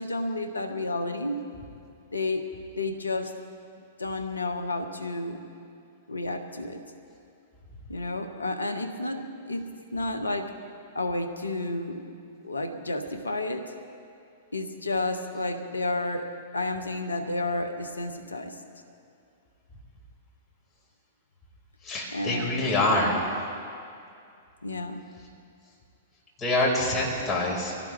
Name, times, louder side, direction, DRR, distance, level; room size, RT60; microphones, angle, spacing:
voice 1, 0.0-1.4 2.1-2.5 2.7-3.3 4.0-5.4 6.1-6.8 7.9-10.5 10.9-12.1 12.4-13.7 14.5-18.6 22.1-22.7 24.6-25.0, left 2 dB, 85° left, 8 dB, 1.3 m, -31 dB
voice 2, 21.8-23.2 26.4-27.7, left 2 dB, 20° left, -4 dB, 5.0 m, -25 dB
23.5 x 17.0 x 3.4 m, 2.5 s
figure-of-eight pair, 105°, 0 cm